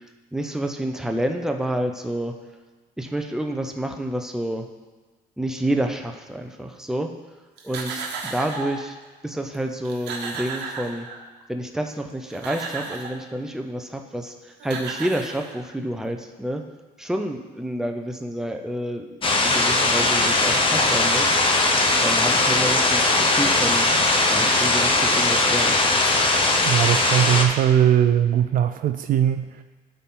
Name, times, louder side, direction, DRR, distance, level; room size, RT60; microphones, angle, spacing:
voice 1, 0.0-2.3 3.0-4.7 5.4-7.1 7.6-9.0 9.2-11.1 11.5-16.6 17.0-19.2 19.4-21.6 22.0-23.9 24.3-25.7, right 1 dB, 5° right, 4 dB, 0.7 m, -29 dB
sound 1, 7.6-8.9 9.5-9.6 9.8-11.4 12.1-13.2 14.3-14.4 14.6-15.9, right 4 dB, 80° right, 1.1 m, -34 dB
sound 2, 19.2-27.4, left 2 dB, 30° left, 1.0 m, -19 dB
voice 2, 26.7-29.6, right 10 dB, 55° right, 9 dB, 0.4 m, -20 dB
12.5 x 4.3 x 3.8 m, 1.3 s
cardioid pair, 110°, 17 cm